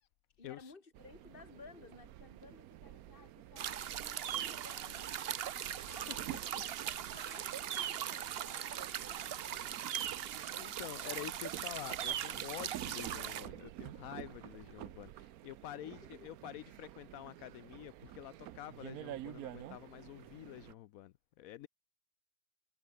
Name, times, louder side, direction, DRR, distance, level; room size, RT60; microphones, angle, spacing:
voice 1, 0.4-5.5 5.8-6.4 7.1-9.3 9.9-10.6 15.0-15.1 15.7-16.3, left 4 dB, 40° left, 2.7 m, -57 dB
sound 1, 0.9-20.7, right 13 dB, 85° right, 1.2 m, -50 dB
sound 2, 3.6-13.5, right 10 dB, 55° right, 0.7 m, -40 dB
voice 2, 5.9-6.6 7.0-7.2 9.5-10.1 10.6-21.7, left 13 dB, 80° left, 1.0 m, -48 dB
omnidirectional pair, 1.5 m